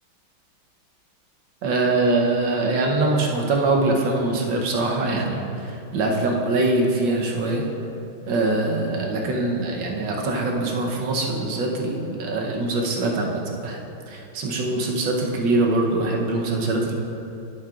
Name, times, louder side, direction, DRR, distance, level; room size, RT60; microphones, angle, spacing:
voice 1, 1.6-7.7 8.3-13.8 14.1-16.9, right 2 dB, 70° right, 0 dB, 1.5 m, -23 dB
10.5 x 8.9 x 2.4 m, 2.7 s
omnidirectional pair, 2.2 m